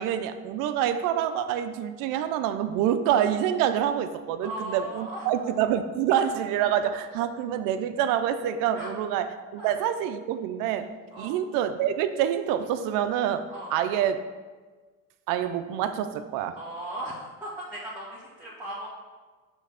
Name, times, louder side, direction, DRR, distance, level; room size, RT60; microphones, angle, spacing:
voice 1, 0.0-9.3 9.5-10.9 11.2-14.2 15.3-16.6, right 10 dB, 85° right, 10 dB, 0.5 m, -26 dB
voice 2, 4.4-5.5 8.7-8.9 9.6-9.7 11.1-11.3 13.5-13.7 16.5-18.9, right 1 dB, 5° right, -9 dB, 1.5 m, -37 dB
6.2 x 3.4 x 5.7 m, 1.4 s
cardioid pair, 105°, 31 cm